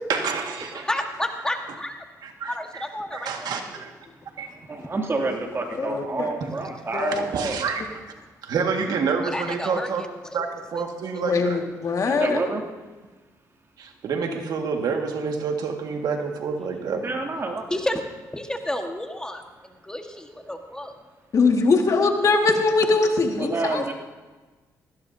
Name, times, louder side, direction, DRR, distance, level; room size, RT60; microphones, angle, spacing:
voice 1, 0.1-0.9 2.2-2.9 3.1-3.9 4.4-4.6 6.4-6.5 7.1-8.1 8.4-10.1 10.3-11.6 13.8-17.1, right 5 dB, 70° right, 3 dB, 1.9 m, -28 dB
voice 2, 0.7-2.0 2.5-3.3 4.8-4.9 9.3-9.9 10.7-10.8 17.7-18.0 18.3-19.4 19.8-20.9, left 1 dB, 10° left, 4 dB, 1.6 m, -30 dB
voice 3, 4.7-7.6 12.1-12.6 17.0-17.6 23.4-23.9, right 3 dB, 35° right, 1 dB, 2.7 m, -28 dB
voice 4, 5.8-6.3 6.9-7.3 11.2-12.4 21.3-23.8, left 4 dB, 50° left, 3 dB, 1.9 m, -21 dB
19.0 x 16.0 x 2.8 m, 1.3 s
cardioid pair, 80°, 7 cm